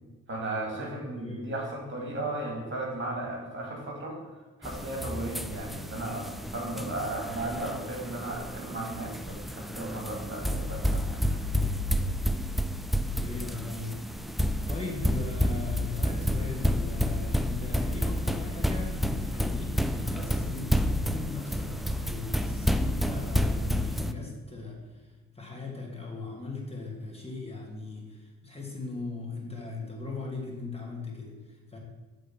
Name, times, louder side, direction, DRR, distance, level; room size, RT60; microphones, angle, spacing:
voice 1, 0.3-4.2 4.6-11.4, right 2 dB, 40° right, 0 dB, 2.1 m, -35 dB
voice 2, 1.2-1.5 2.0-2.2 13.0-14.0 14.7-25.1 25.3-31.8, left 3 dB, 20° left, -1 dB, 1.7 m, -39 dB
sound 1, 4.6-24.1, equal, ahead, 0.3 m, -30 dB
8.3 x 3.9 x 5.4 m, 1.3 s
cardioid pair, 90°, 30 cm